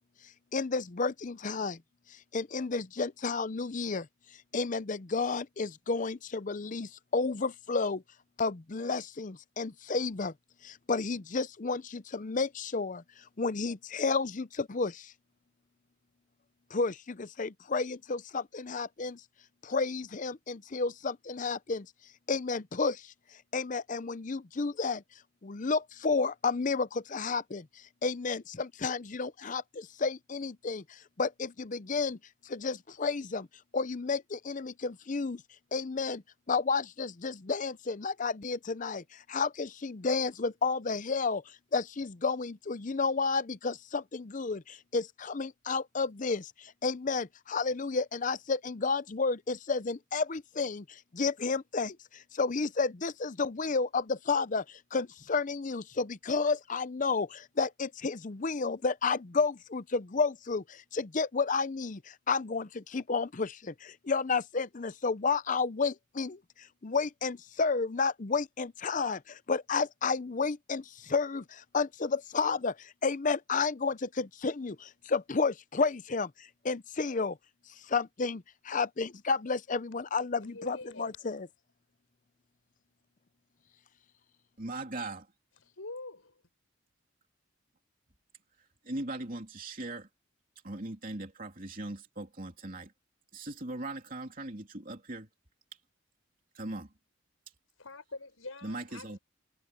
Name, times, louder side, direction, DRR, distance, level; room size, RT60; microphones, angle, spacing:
voice 1, 0.2-1.8 2.1-4.1 4.5-8.0 8.4-10.3 10.6-15.1 16.7-19.2 19.6-21.9 22.3-23.1 23.5-25.0 25.4-32.2 32.4-33.5 33.7-35.4 35.7-77.4 77.7-81.5, left 4 dB, 40° left, 0.6 m, -32 dB
voice 2, 80.3-81.1 85.6-86.4 97.8-99.2, left 2 dB, 80° left, 6.0 m, -45 dB
voice 3, 84.6-85.3 88.8-90.1 90.6-92.9 93.3-95.3 96.5-96.9 98.6-99.2, right 2 dB, 40° right, 3.1 m, -39 dB
head